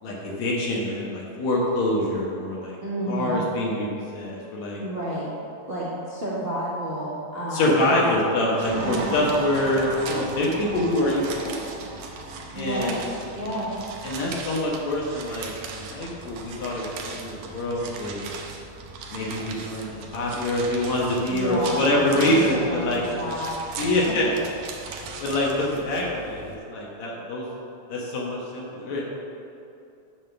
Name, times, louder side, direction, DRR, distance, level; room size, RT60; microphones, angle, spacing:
voice 1, 0.0-2.8 3.1-4.8 7.5-11.6 12.5-13.0 14.0-18.2 19.1-23.0 23.8-24.3 25.2-27.5 27.9-29.0, left 1 dB, 70° left, -4 dB, 2.4 m, -25 dB
voice 2, 2.8-3.4 4.8-5.3 5.7-8.0 8.7-9.1 12.5-13.0 13.4-13.7 21.3-24.5, right 1 dB, 30° right, -10 dB, 1.3 m, -31 dB
sound 1, 8.4-15.8, right 3 dB, 70° right, 2.0 m, -38 dB
sound 2, 8.6-26.6, right 4 dB, 90° right, 2.3 m, -39 dB
9.0 x 3.8 x 6.7 m, 2.6 s
omnidirectional pair, 3.5 m